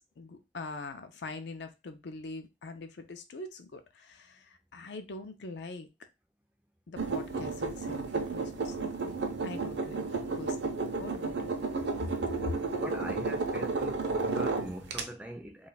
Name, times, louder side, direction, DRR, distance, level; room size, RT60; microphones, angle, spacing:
voice 1, 0.0-5.9 6.9-9.2 9.4-11.6 12.0-12.5, left 3 dB, 65° left, 0.4 m, -43 dB
sound 1, 7.0-15.0, right 3 dB, 70° right, 0.5 m, -32 dB
voice 2, 12.8-15.7, equal, 5° right, 0.3 m, -42 dB
2.3 x 2.2 x 3.9 m
head